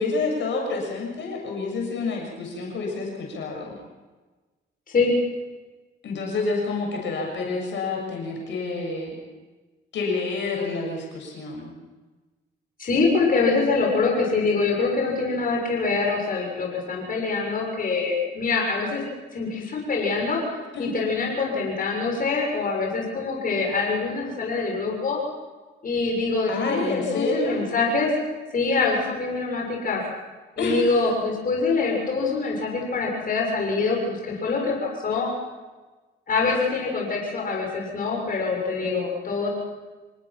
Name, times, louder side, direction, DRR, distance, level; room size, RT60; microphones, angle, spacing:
voice 1, 0.0-3.7 6.0-9.2 9.9-11.7 20.7-20.9 26.4-27.6 30.6-31.1 38.8-39.0 39.4-39.5, left 3 dB, 70° left, 0 dB, 7.2 m, -28 dB
voice 2, 12.8-19.0 19.3-25.2 25.8-28.1 28.5-30.0 30.6-35.3 36.3-39.5, left 4 dB, 45° left, -1 dB, 6.6 m, -24 dB
27.0 x 19.0 x 6.0 m, 1.3 s
cardioid pair, 90°, 20 cm